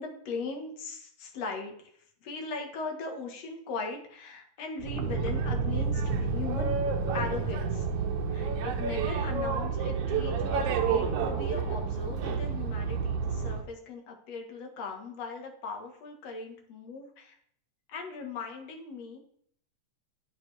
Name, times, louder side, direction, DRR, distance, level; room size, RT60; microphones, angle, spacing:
voice 1, 0.0-1.9 2.2-6.7 7.1-7.9 8.3-17.4 17.9-19.2, left 4 dB, 60° left, 2 dB, 2.4 m, -39 dB
Boat Water vehicle, 4.8-13.6, right 5 dB, 75° right, 2.2 m, -29 dB
11.0 x 6.6 x 3.4 m, 0.64 s
omnidirectional pair, 3.6 m